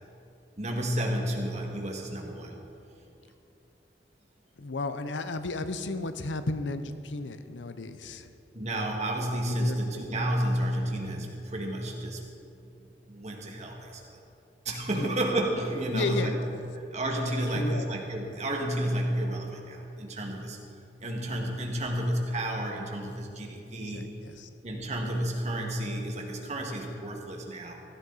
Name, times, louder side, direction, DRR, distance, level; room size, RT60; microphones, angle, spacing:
voice 1, 0.6-2.6 8.5-12.2 13.1-14.2 14.6-16.3 16.7-20.6 21.0-24.1 24.6-27.7, right 1 dB, 40° right, 0 dB, 1.8 m, -31 dB
voice 2, 4.6-8.3 9.6-10.0 14.9-15.1 15.9-16.4 17.5-17.9 23.8-24.5, left 3 dB, 90° left, 10 dB, 0.7 m, -34 dB
16.0 x 13.0 x 4.0 m, 2.7 s
head